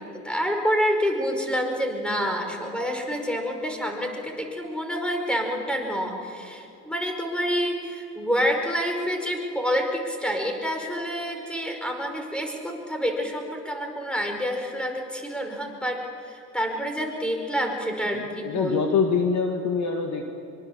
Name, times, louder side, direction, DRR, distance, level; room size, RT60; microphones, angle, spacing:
voice 1, 0.0-18.8, equal, ahead, 3 dB, 5.0 m, -28 dB
voice 2, 18.1-20.2, left 5 dB, 40° left, 4 dB, 2.0 m, -25 dB
24.5 x 24.5 x 7.2 m, 2.8 s
hypercardioid pair, 80°, 46 cm